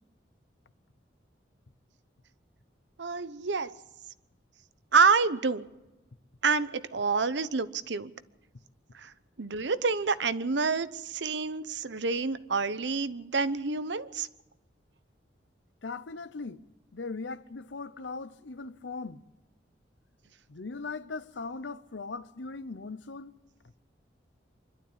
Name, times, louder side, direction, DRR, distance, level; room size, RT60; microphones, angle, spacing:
voice 1, 3.0-3.7 4.9-5.6 6.4-8.1 8.9-9.1 9.4-14.3, right 4 dB, 75° right, 0.9 m, -27 dB
voice 2, 15.8-16.6 16.9-19.2 20.5-23.4, left 4 dB, 85° left, 0.8 m, -39 dB
25.0 x 12.0 x 8.8 m
head